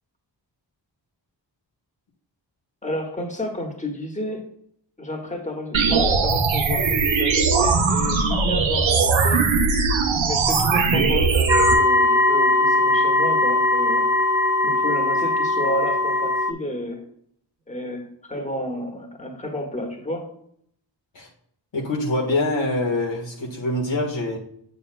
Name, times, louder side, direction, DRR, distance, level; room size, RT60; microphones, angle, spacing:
voice 1, 2.8-4.4 5.0-9.4 10.2-14.1 14.6-17.0 17.7-20.3, left 1 dB, 15° left, 1 dB, 1.6 m, -31 dB
sound 1, 5.7-11.7, right 4 dB, 85° right, 0.9 m, -20 dB
sound 2, 11.5-16.5, left 2 dB, 10° right, 0.4 m, -19 dB
voice 2, 21.7-24.4, left 2 dB, 70° left, -1 dB, 1.6 m, -24 dB
6.9 x 6.9 x 2.3 m, 0.68 s
cardioid pair, 45°, 46 cm